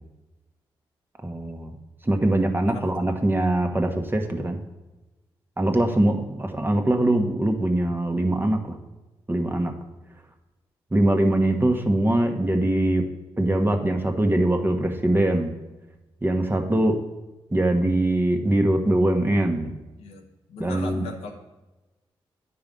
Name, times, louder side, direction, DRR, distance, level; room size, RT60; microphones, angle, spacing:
voice 1, 1.2-1.8 2.0-4.6 5.6-8.6 9.3-9.7 10.9-13.0 13.4-15.5 16.2-17.0 17.5-19.7 20.6-21.0, right 1 dB, 20° right, 4 dB, 1.1 m, -22 dB
voice 2, 20.0-21.3, left 3 dB, 90° left, 1 dB, 1.0 m, -38 dB
8.9 x 4.8 x 5.3 m, 1.1 s
supercardioid pair, 50°, 11 cm